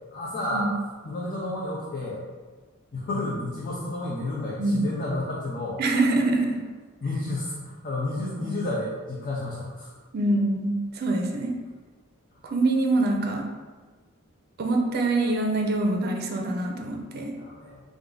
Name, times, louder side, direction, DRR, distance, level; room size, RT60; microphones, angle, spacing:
voice 1, 0.1-0.7 1.0-2.2 2.9-5.8 7.0-9.9 17.4-17.8, left 2 dB, 45° left, -6 dB, 0.6 m, -31 dB
voice 2, 5.8-6.6 8.3-8.5 10.1-11.5 12.4-13.4 14.6-17.3, right 2 dB, 50° right, 2 dB, 0.5 m, -25 dB
3.5 x 2.6 x 3.8 m, 1.4 s
head